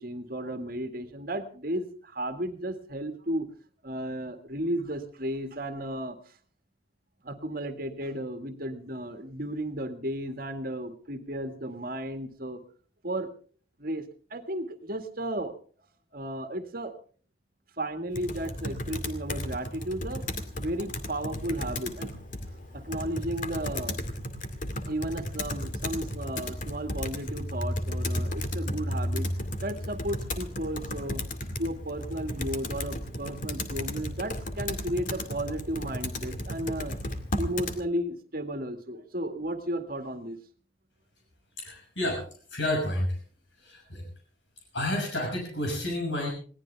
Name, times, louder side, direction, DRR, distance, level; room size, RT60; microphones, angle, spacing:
voice 1, 0.0-3.5 3.8-6.2 7.2-12.6 13.0-13.3 13.8-14.0 14.3-15.5 16.1-16.9 17.8-20.2 20.5-22.1 22.7-24.0 24.8-29.3 29.6-31.2 31.6-37.0 37.4-40.4, right 1 dB, 50° right, 7 dB, 2.0 m, -34 dB
Computer keyboard, 18.1-37.8, left 1 dB, 45° left, 2.2 m, -34 dB
voice 2, 41.6-43.2 43.6-44.0 44.7-46.3, left 1 dB, 75° left, 1 dB, 6.3 m, -30 dB
21.5 x 18.0 x 3.4 m, 0.42 s
head